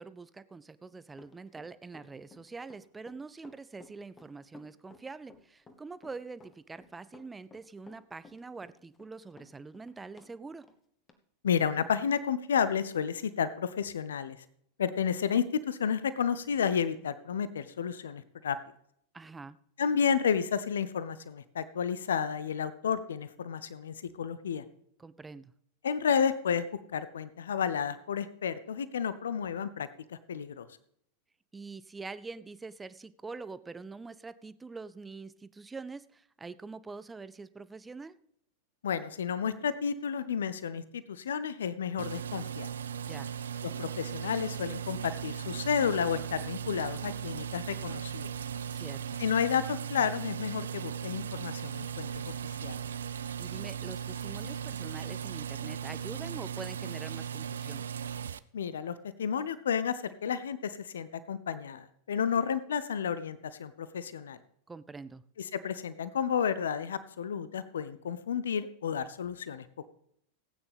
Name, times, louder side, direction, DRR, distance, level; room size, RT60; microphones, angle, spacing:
voice 1, 0.0-10.6 19.1-19.6 25.0-25.5 31.5-38.2 43.1-43.3 48.7-49.2 53.4-57.9 64.7-65.2, right 4 dB, 10° right, 15 dB, 0.5 m, -45 dB
Run, 1.1-10.3 10.6-10.8 11.1-11.2, left 3 dB, 20° left, 1.2 m, -56 dB
voice 2, 11.4-14.4 14.8-18.6 19.8-24.6 25.8-26.6 26.9-30.7 38.8-42.7 43.8-48.3 49.2-52.3 52.6-52.8 58.5-64.4 65.4-69.7, left 7 dB, 65° left, 15 dB, 0.6 m, -31 dB
sound 1, 42.0-58.4, right 8 dB, 65° right, 0.4 m, -37 dB
17.5 x 8.9 x 3.5 m, 0.69 s
figure-of-eight pair, 90°, 0 cm